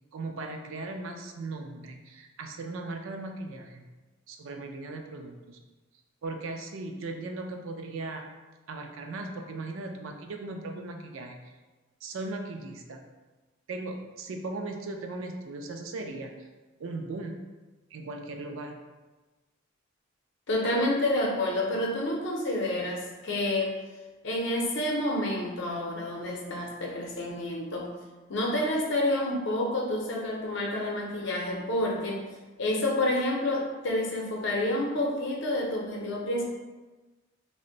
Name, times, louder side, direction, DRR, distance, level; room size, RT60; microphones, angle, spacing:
voice 1, 0.1-3.9 4.3-5.6 6.2-8.2 8.7-11.4 12.0-13.0 13.7-16.5 16.8-17.4 17.9-18.8, right 2 dB, 75° right, 4 dB, 0.4 m, -38 dB
voice 2, 20.5-23.8 24.2-27.9 28.3-32.2 32.6-36.5, left 1 dB, 60° left, -1 dB, 0.6 m, -29 dB
2.5 x 2.1 x 3.8 m, 1.2 s
head